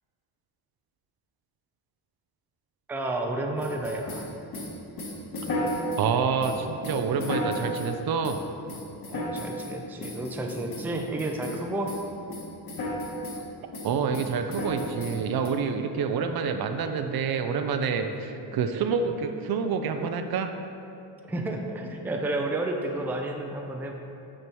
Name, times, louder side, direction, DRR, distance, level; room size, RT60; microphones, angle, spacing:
voice 1, 2.9-4.3 9.1-11.9 17.9-18.1 21.3-23.9, right 2 dB, 5° right, 2 dB, 0.4 m, -31 dB
sound 1, 3.6-6.1 6.4-7.9 8.2-8.4 8.7-9.7 10.0-11.6 11.9-12.0 12.3-13.4 13.7-15.5, left 1 dB, 50° left, 1.6 m, -33 dB
voice 2, 6.0-8.4 13.8-20.5, right 6 dB, 55° right, 6 dB, 0.6 m, -27 dB
6.3 x 4.4 x 6.2 m, 2.7 s
cardioid pair, 130°, 44 cm